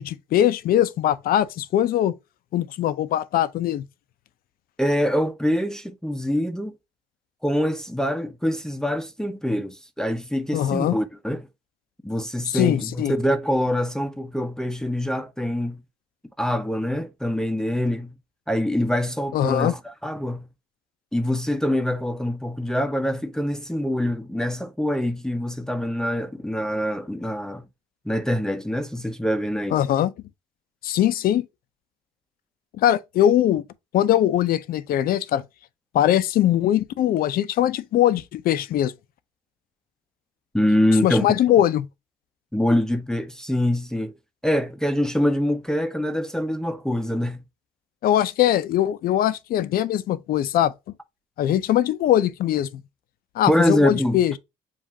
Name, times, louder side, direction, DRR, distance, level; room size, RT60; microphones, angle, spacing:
voice 1, 0.0-2.1 2.5-3.8 10.5-11.0 12.5-13.1 19.3-19.7 29.7-30.1 30.8-31.5 32.8-33.6 33.9-35.4 35.9-38.9 41.0-41.9 48.0-50.7 51.4-52.8 53.4-54.4, left 11 dB, 60° left, 0.5 m, -21 dB
voice 2, 4.8-6.8 7.4-11.5 12.0-15.8 16.4-18.1 18.5-20.5 21.1-27.6 28.1-29.8 40.5-41.3 42.5-44.1 44.4-47.4 53.5-54.2, equal, 5° left, 0.6 m, -24 dB
7.4 x 2.5 x 2.8 m
cardioid pair, 110°, 17 cm